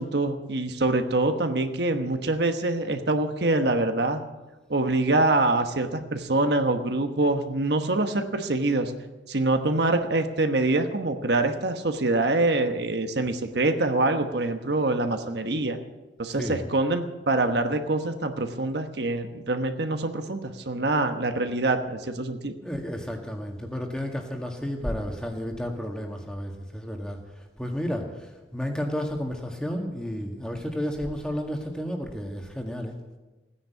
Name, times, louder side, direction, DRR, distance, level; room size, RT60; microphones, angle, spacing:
voice 1, 0.0-4.2 4.7-8.9 9.3-15.8 16.2-22.5, right 2 dB, 65° right, 6 dB, 1.1 m, -25 dB
voice 2, 22.6-27.2 27.6-32.9, equal, 5° left, 2 dB, 1.8 m, -32 dB
16.0 x 10.0 x 8.3 m, 1.1 s
head